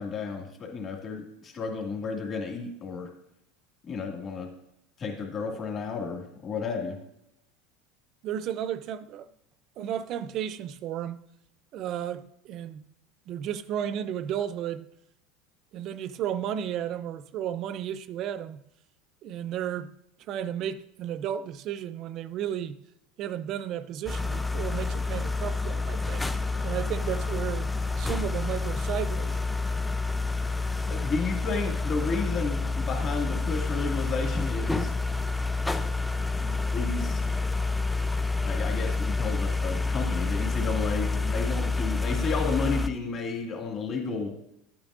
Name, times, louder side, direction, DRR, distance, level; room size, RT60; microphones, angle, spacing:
voice 1, 0.0-3.1 3.9-4.5 5.0-7.0 30.9-34.9 36.4-37.2 38.4-44.3, left 4 dB, 35° left, 2.0 m, -32 dB
voice 2, 8.2-9.3 9.8-11.2 11.7-12.8 13.3-14.9 15.7-18.6 19.2-19.9 20.3-22.8 23.2-26.2 26.6-27.7 28.0-29.4, right 10 dB, 50° right, 0.5 m, -33 dB
sound 1, 24.1-42.9, left 3 dB, 5° left, 0.4 m, -28 dB
11.5 x 8.7 x 2.5 m
supercardioid pair, 120°, 0 cm